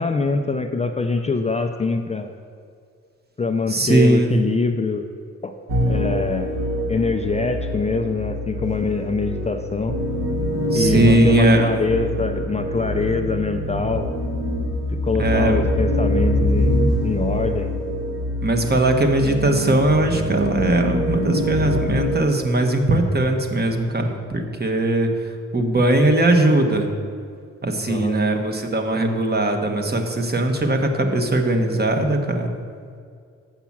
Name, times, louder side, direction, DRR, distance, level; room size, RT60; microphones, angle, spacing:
voice 1, 0.0-2.3 3.4-5.0 5.4-5.5 5.9-6.6 6.9-10.0 10.7-14.1 14.9-17.7 27.8-28.2, left 4 dB, 20° left, 5 dB, 0.5 m, -24 dB
voice 2, 3.7-4.3 10.7-11.8 15.2-15.6 18.4-26.9 27.6-32.5, right 1 dB, 30° right, 4 dB, 1.1 m, -19 dB
sound 1, 5.7-22.2, equal, 55° right, 1.3 m, -24 dB
7.3 x 5.8 x 7.2 m, 2.2 s
cardioid pair, 80°, 31 cm